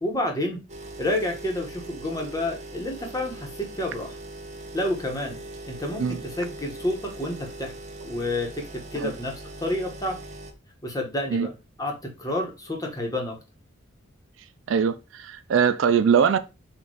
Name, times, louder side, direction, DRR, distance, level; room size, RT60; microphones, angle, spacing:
voice 1, 0.0-0.6 1.0-4.2 4.7-7.7 8.0-8.6 8.9-9.3 9.6-10.1 10.8-11.5 11.8-11.9 12.2-13.3, left 1 dB, 20° left, 1.1 m, -29 dB
sound 1, 0.7-10.5, right 2 dB, 35° right, 0.8 m, -41 dB
voice 2, 14.7-16.4, right 7 dB, 65° right, 0.4 m, -21 dB
4.3 x 2.6 x 4.7 m
head